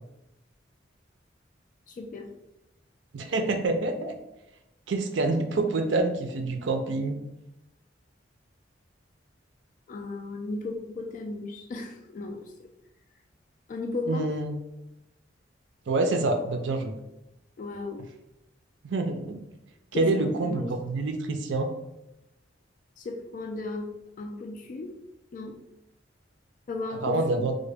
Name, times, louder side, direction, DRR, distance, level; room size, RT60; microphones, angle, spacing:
voice 1, 1.9-2.3 9.9-12.7 13.7-14.3 17.6-18.0 19.9-20.7 23.0-24.9 25.3-25.6 26.7-27.4, left 3 dB, 45° left, 4 dB, 0.3 m, -35 dB
voice 2, 3.1-4.1 4.9-7.2 14.1-14.5 15.9-16.9 18.8-19.4 19.9-21.7 27.0-27.6, right 2 dB, 70° right, 5 dB, 0.4 m, -27 dB
3.7 x 2.1 x 3.3 m, 0.91 s
head